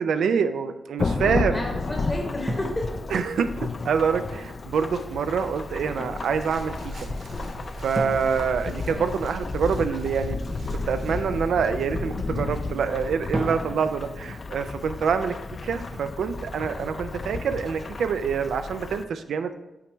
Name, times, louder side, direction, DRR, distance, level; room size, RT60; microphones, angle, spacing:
voice 1, 0.0-1.6 3.1-7.1 7.8-10.4 10.7-15.4 15.6-19.6, right 6 dB, 80° right, 9 dB, 0.3 m, -26 dB
Thunderstorm / Rain, 1.0-19.0, left 3 dB, 35° left, 0.3 m, -32 dB
voice 2, 1.5-2.9 8.8-9.2 16.7-17.1, left 1 dB, 15° left, 1 dB, 0.9 m, -33 dB
sound 1, 2.5-4.1 7.9-9.8 13.3-15.6, right 1 dB, 15° right, 0.5 m, -36 dB
sound 2, 6.3-11.5, right 2 dB, 55° right, 1.4 m, -39 dB
8.2 x 4.4 x 3.0 m, 0.99 s
wide cardioid pair, 130°, 0 cm